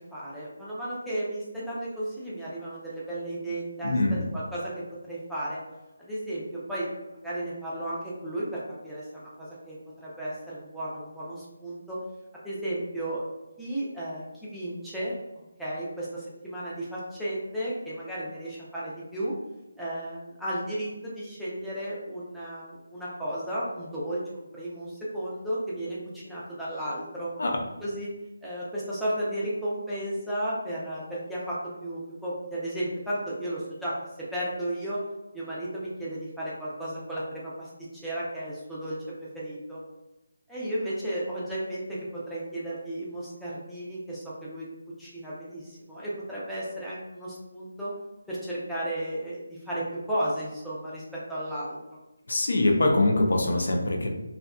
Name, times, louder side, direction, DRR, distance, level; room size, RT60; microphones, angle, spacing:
voice 1, 0.1-5.6 6.0-6.9 7.1-12.0 12.4-13.2 13.6-19.4 19.8-27.3 27.8-28.1 28.4-33.9 34.3-35.0 35.3-39.8 40.5-44.7 45.0-47.9 48.3-51.8, right 1 dB, ahead, -10 dB, 0.4 m, -34 dB
voice 2, 3.8-4.2 27.4-27.6 52.3-54.1, left 2 dB, 75° left, 1 dB, 0.5 m, -23 dB
2.7 x 2.4 x 2.2 m, 0.99 s
figure-of-eight pair, 165°, 0 cm